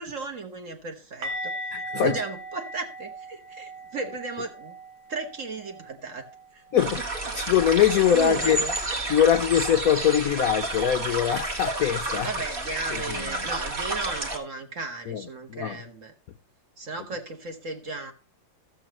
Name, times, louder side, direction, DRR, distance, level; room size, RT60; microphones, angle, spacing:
voice 1, 0.0-4.8 5.1-6.3 6.5-6.6 6.9-7.0 7.9-8.8 12.2-16.1 16.8-18.1, right 3 dB, 45° right, 1.4 m, -35 dB
sound 1, 1.2-7.0 7.3-7.5 7.8-8.0 11.2-11.3, equal, 70° right, 2.0 m, -39 dB
voice 2, 1.7-2.2 6.7-7.0 7.3-8.6 9.1-12.3 12.9-13.0 15.1-15.2 15.5-15.8, left 9 dB, 70° left, 0.8 m, -22 dB
sound 2, 6.8-14.4, right 2 dB, 30° right, 1.6 m, -31 dB
15.5 x 7.0 x 2.9 m
omnidirectional pair, 2.3 m